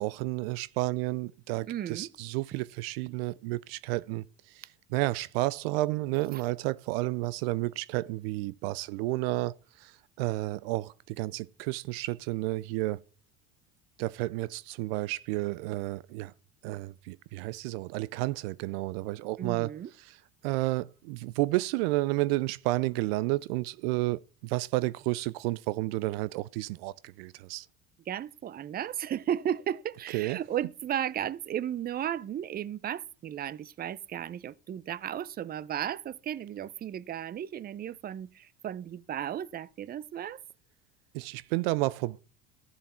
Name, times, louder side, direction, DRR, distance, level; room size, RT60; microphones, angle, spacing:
voice 1, 0.0-4.6 4.9-13.0 14.0-16.3 16.6-19.7 20.4-27.7 30.1-30.4 41.1-42.2, right 19 dB, 75° right, 0.5 m, -31 dB
voice 2, 1.7-2.1 19.4-19.9 28.1-40.4, right 10 dB, 30° right, 0.6 m, -34 dB
12.5 x 7.1 x 4.3 m
hypercardioid pair, 85°, 30 cm